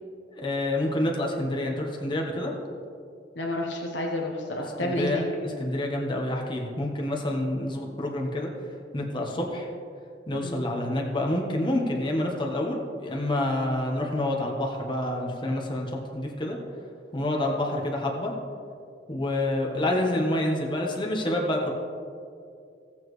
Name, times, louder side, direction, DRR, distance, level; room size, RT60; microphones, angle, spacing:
voice 1, 0.3-2.5 4.8-5.2 5.6-8.5 8.9-9.7 10.3-16.6 17.1-18.3 19.1-21.7, left 1 dB, 25° left, -1 dB, 1.1 m, -28 dB
voice 2, 3.4-5.2 10.4-10.7 20.0-20.2, left 1 dB, 85° left, 0 dB, 1.1 m, -30 dB
16.5 x 7.2 x 3.2 m, 2.3 s
head